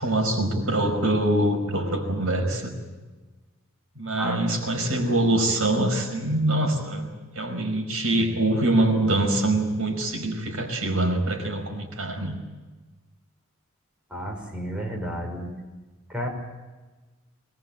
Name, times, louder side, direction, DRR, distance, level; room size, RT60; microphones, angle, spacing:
voice 1, 0.0-2.7 4.0-7.1 7.4-12.4, right 1 dB, 90° right, 4 dB, 5.2 m, -24 dB
voice 2, 14.1-15.5 16.1-16.3, equal, 5° right, -1 dB, 5.5 m, -31 dB
23.0 x 21.0 x 8.7 m, 1.2 s
head